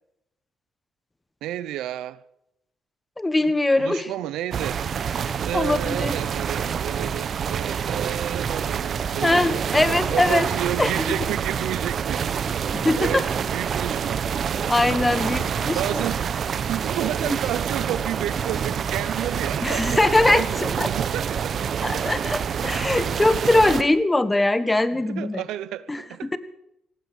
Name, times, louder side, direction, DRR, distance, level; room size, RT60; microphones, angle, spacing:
voice 1, 1.4-2.2 3.8-4.8 5.5-12.6 13.0-14.7 15.8-20.0 20.3-21.7 25.1-26.4, right 13 dB, 90° right, 0.7 m, -31 dB
voice 2, 3.2-4.1 5.5-6.1 9.2-10.5 10.8-11.0 12.7-13.2 14.7-16.0 17.2-17.4 19.6-20.9 21.8-25.4 25.9-26.0 26.3-26.4, left 2 dB, 15° left, 1.4 m, -22 dB
sound 1, 4.5-23.8, right 7 dB, 55° right, 1.1 m, -27 dB
19.0 x 15.5 x 4.9 m
cardioid pair, 90°, 0 cm